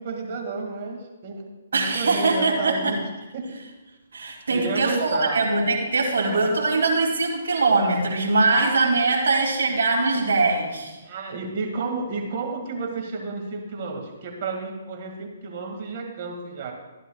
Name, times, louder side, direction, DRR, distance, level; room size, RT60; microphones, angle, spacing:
voice 1, 0.0-1.4 1.7-3.0 3.3-3.6 4.5-5.4 6.3-6.5 8.3-8.7 11.0-16.7, right 3 dB, 45° right, 2 dB, 1.9 m, -32 dB
voice 2, 1.7-2.9 4.1-11.0, right 3 dB, 75° right, -2 dB, 2.3 m, -22 dB
14.0 x 10.5 x 2.3 m, 1.1 s
hypercardioid pair, 150°, 0 cm